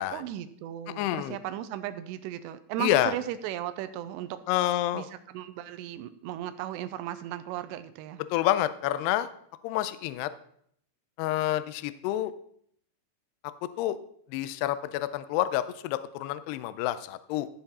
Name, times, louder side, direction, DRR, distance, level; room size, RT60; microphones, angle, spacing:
voice 1, 0.1-4.4 4.9-8.2, right 12 dB, 85° right, 11 dB, 2.5 m, -36 dB
voice 2, 0.9-1.4 2.8-3.1 4.5-5.1 8.3-9.3 9.6-10.3 11.2-12.3 13.8-14.0 14.3-17.5, left 14 dB, 85° left, 13 dB, 2.3 m, -28 dB
14.5 x 5.9 x 4.2 m, 0.67 s
omnidirectional pair, 5.4 m